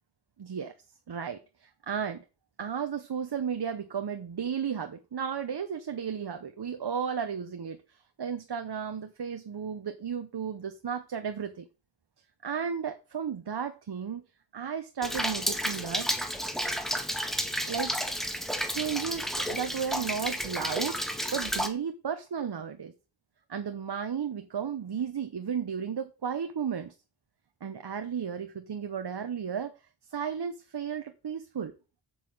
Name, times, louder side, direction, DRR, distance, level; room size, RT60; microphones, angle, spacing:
voice 1, 0.4-0.7 1.1-2.2 2.6-11.7 12.4-14.2 14.5-16.1 17.7-18.1 18.7-21.0 21.3-22.9 23.5-26.9 27.6-29.7 30.1-31.7, right 7 dB, 55° right, 1.1 m, -34 dB
Rain, 15.0-21.7, equal, ahead, 1.6 m, -31 dB
8.7 x 6.0 x 7.8 m
wide cardioid pair, 120°, 47 cm